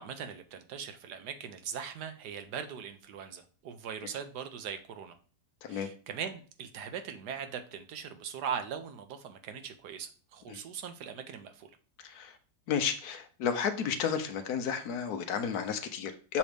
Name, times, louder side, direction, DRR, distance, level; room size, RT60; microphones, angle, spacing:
voice 1, 0.0-5.1 5.7-11.7, right 7 dB, 70° right, 1.3 m, -40 dB
voice 2, 12.7-16.4, left 7 dB, 65° left, 1.2 m, -32 dB
7.1 x 3.0 x 5.0 m
omnidirectional pair, 1.9 m